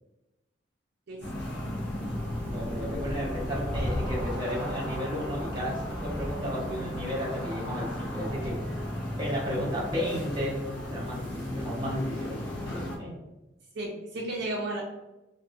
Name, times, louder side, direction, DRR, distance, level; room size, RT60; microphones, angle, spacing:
voice 1, 1.1-1.6 13.7-14.8, right 1 dB, 60° right, -3 dB, 0.4 m, -34 dB
sound 1, 1.2-13.0, left 1 dB, 70° left, 0.8 m, -34 dB
voice 2, 2.4-8.6 9.2-10.6 10.9-13.1, equal, 25° right, -5 dB, 1.0 m, -33 dB
2.4 x 2.3 x 2.6 m, 1.0 s
head